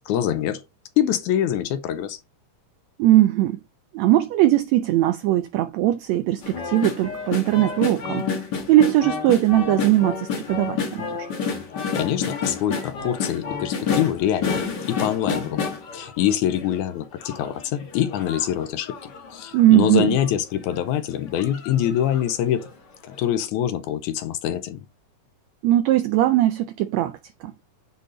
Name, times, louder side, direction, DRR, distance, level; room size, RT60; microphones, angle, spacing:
voice 1, 0.1-0.6 1.0-2.2 12.0-14.6 14.9-15.6 15.9-22.7 23.0-24.8, left 11 dB, 80° left, 2.0 m, -24 dB
voice 2, 3.0-3.6 3.9-8.3 8.7-11.3 19.5-20.2 25.6-27.2 27.4-27.5, right 14 dB, 85° right, 1.5 m, -19 dB
sound 1, 6.4-16.8 17.2-19.6 20.2-20.3 20.5-20.8 21.4-22.3 22.7-22.8, left 5 dB, 45° left, 1.4 m, -29 dB
8.4 x 4.0 x 3.8 m
omnidirectional pair, 3.7 m